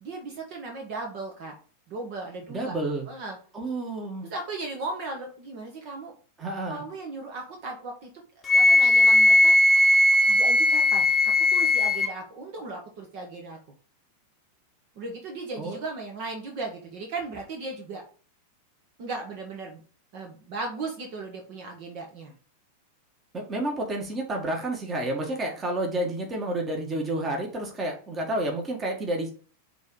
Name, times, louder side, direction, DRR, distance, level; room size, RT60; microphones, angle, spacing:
voice 1, 0.0-1.5 1.9-2.8 3.1-3.4 4.3-6.1 6.7-8.1 8.4-9.5 10.3-11.1 11.5-13.6 14.9-18.0 19.0-19.8 20.1-22.3, right 3 dB, 45° right, 2 dB, 1.4 m, -36 dB
voice 2, 2.5-3.1 3.5-4.3 6.4-6.8 15.6-15.8 23.3-29.3, right 1 dB, 20° right, 1 dB, 1.9 m, -30 dB
Wind instrument woodwind instrument, 8.5-12.1, left 1 dB, 20° left, 1.0 m, -18 dB
6.1 x 4.0 x 4.7 m, 0.41 s
figure-of-eight pair, 90°, 0 cm